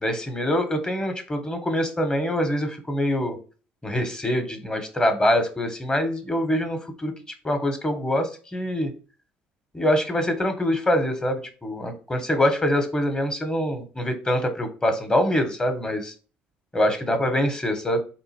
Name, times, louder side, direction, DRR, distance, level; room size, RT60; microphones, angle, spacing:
voice 1, 0.0-3.4 3.8-7.1 7.4-8.9 9.7-16.1 16.7-18.0, left 1 dB, 15° left, 6 dB, 1.2 m, -24 dB
3.8 x 2.6 x 4.3 m, 0.37 s
hypercardioid pair, 65°, 5 cm